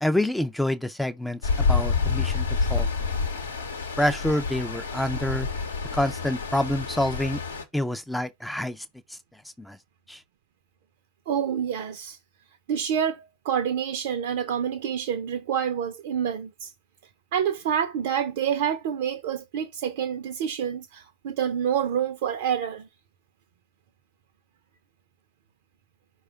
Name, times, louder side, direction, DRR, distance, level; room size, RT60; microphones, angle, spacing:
voice 1, 0.0-2.9 4.0-5.5 5.9-7.4 7.7-8.8 9.6-9.8 10.1-10.2, left 1 dB, 5° left, 0.4 m, -27 dB
Stream, 1.4-7.6, left 5 dB, 75° left, 0.8 m, -28 dB
voice 2, 11.3-12.2 12.7-16.7 17.3-22.9, right 8 dB, 50° right, 0.5 m, -27 dB
4.7 x 2.2 x 4.8 m
figure-of-eight pair, 90°, 0 cm